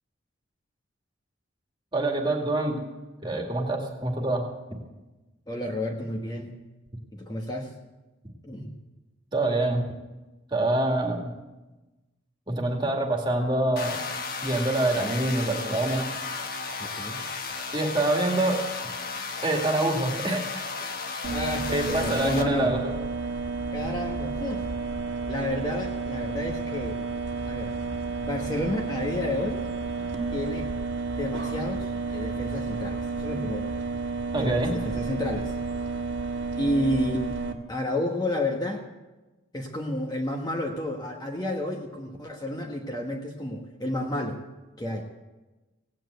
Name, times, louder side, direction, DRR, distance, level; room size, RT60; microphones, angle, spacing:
voice 1, 1.9-2.9 3.2-4.4 9.3-9.9 10.5-11.3 12.5-14.0 14.4-16.1 17.7-18.6 19.4-20.5 21.7-22.9 34.3-34.7, right 2 dB, 25° right, 1 dB, 2.1 m, -26 dB
voice 2, 5.5-6.5 7.1-7.7 8.4-8.7 16.9-17.2 21.3-22.7 23.7-24.7 25.3-27.0 27.5-27.7 28.2-29.6 30.3-30.7 31.1-33.7 34.4-35.5 36.6-37.2 37.7-38.8 39.5-44.4 44.8-45.1, left 1 dB, 20° left, 1 dB, 1.3 m, -30 dB
sound 1, 13.8-22.4, left 4 dB, 45° left, 1.4 m, -34 dB
sound 2, 21.2-37.5, right 4 dB, 65° right, 1.4 m, -31 dB
17.0 x 9.1 x 7.9 m, 1.1 s
head